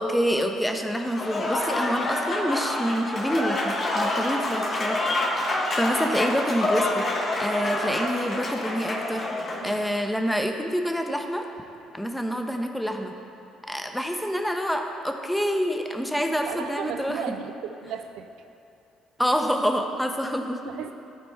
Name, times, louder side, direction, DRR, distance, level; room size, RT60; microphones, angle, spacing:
voice 1, 0.0-5.1 5.3-5.4 5.8-7.0 7.4-9.2 9.6-11.4 11.9-13.1 13.7-17.2 19.2-20.6, equal, 5° left, 4 dB, 0.8 m, -27 dB
Applause / Crowd, 1.0-9.9, left 1 dB, 45° left, 1.3 m, -27 dB
voice 2, 16.4-18.3 20.7-20.9, right 8 dB, 70° right, 7 dB, 0.4 m, -35 dB
12.5 x 4.3 x 3.3 m, 2.8 s
hypercardioid pair, 55°, 0 cm